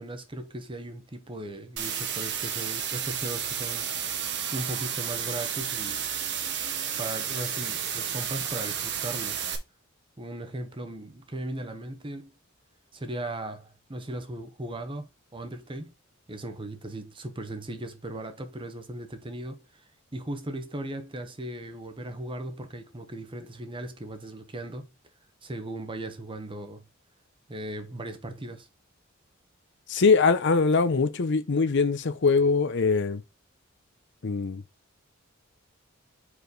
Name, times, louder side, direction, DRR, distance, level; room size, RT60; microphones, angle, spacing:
voice 1, 0.0-3.9 4.1-6.1 7.0-9.5 10.2-12.3 12.9-15.9 16.3-19.8 20.1-24.9 25.4-26.8 27.5-28.7, right 1 dB, 25° right, 1.0 m, -37 dB
sound 1, 1.8-9.6, right 8 dB, 60° right, 1.2 m, -32 dB
voice 2, 29.9-33.2 34.2-34.6, left 4 dB, 60° left, 0.7 m, -22 dB
5.0 x 4.9 x 3.9 m
head